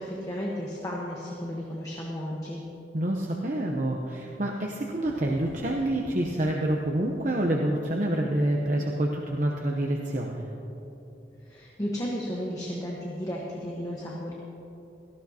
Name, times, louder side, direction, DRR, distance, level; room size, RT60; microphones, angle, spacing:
voice 1, 0.0-2.6 11.4-14.3, equal, 20° left, -3 dB, 1.2 m, -33 dB
voice 2, 2.9-10.5, right 1 dB, 45° right, 0 dB, 0.8 m, -27 dB
sound 1, 5.0-8.8, equal, 50° left, 1.4 m, -48 dB
18.0 x 14.5 x 2.9 m, 2.9 s
head